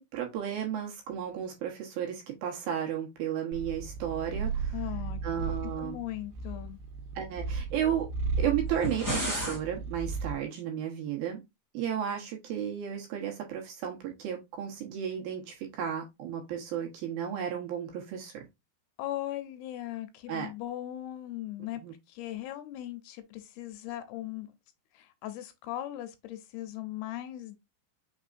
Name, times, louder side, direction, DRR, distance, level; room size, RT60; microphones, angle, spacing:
voice 1, 0.0-4.8 5.2-6.0 7.2-8.1 8.4-11.4 11.7-18.5 20.3-20.5 21.8-21.9, right 9 dB, 70° right, 2.6 m, -33 dB
Purr, 3.5-10.4, right 4 dB, 85° right, 2.8 m, -35 dB
voice 2, 4.7-5.2 5.8-6.8 19.0-21.8 22.1-24.5 24.9-27.6, left 14 dB, 80° left, 2.5 m, -38 dB
sound 1, 8.6-9.6, equal, 5° right, 1.6 m, -32 dB
6.1 x 3.4 x 2.5 m
omnidirectional pair, 4.7 m